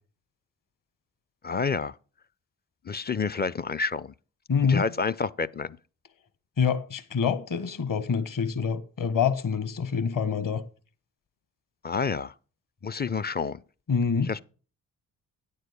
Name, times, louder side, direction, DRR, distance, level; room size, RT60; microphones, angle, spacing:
voice 1, 1.4-1.9 2.8-4.1 4.7-5.8 11.8-12.3 12.8-13.6 14.2-14.4, left 5 dB, 20° left, 0.5 m, -29 dB
voice 2, 4.5-4.9 6.6-10.6 13.9-14.3, left 6 dB, 45° left, 1.4 m, -26 dB
9.4 x 6.7 x 5.2 m
hypercardioid pair, 40°, 45 cm